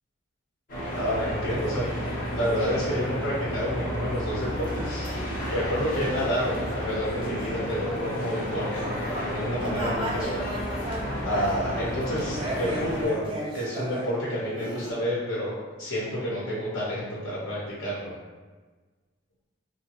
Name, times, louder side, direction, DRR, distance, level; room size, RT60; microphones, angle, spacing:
sound 1, 0.7-13.0, equal, 40° left, 0.7 m, -32 dB
voice 1, 0.9-1.8 2.3-5.1 5.5-10.5 10.8-10.9 11.2-18.2, equal, 85° left, -7 dB, 0.7 m, -29 dB
sound 2, 4.4-14.2 14.5-14.9, right 1 dB, 25° right, 0.3 m, -37 dB
3.0 x 2.0 x 2.9 m, 1.3 s
head